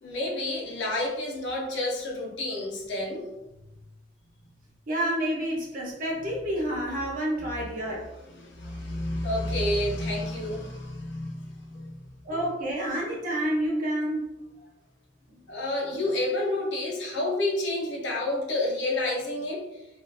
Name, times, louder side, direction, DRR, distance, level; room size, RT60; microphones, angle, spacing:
voice 1, 0.0-3.3 7.6-7.7 8.3-12.0 15.5-19.7, left 1 dB, 60° left, -1 dB, 0.6 m, -29 dB
voice 2, 4.9-8.1 12.2-14.3, right 1 dB, 40° right, -3 dB, 0.6 m, -29 dB
2.5 x 2.3 x 2.3 m, 0.93 s
head